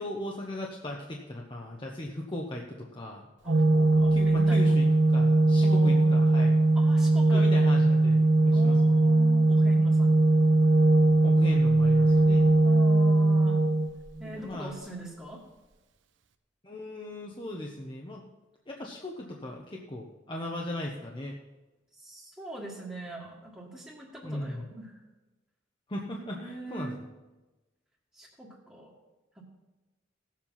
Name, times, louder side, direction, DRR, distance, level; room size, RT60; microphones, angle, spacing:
voice 1, 0.0-3.3 4.1-4.8 5.1-6.6 7.3-9.1 11.2-12.5 14.2-14.7 16.6-18.2 18.7-21.4 24.2-24.7 25.9-27.1, left 1 dB, 25° left, -1 dB, 0.9 m, -37 dB
voice 2, 3.4-4.8 5.6-6.2 6.8-7.5 8.5-10.3 12.6-13.7 14.2-15.4 21.9-25.0 26.1-27.0 28.1-28.9 29.4-29.5, right 2 dB, 5° right, -6 dB, 1.7 m, -42 dB
Organ, 3.5-14.4, right 2 dB, 85° right, 0.8 m, -21 dB
16.5 x 7.4 x 5.6 m, 1.1 s
head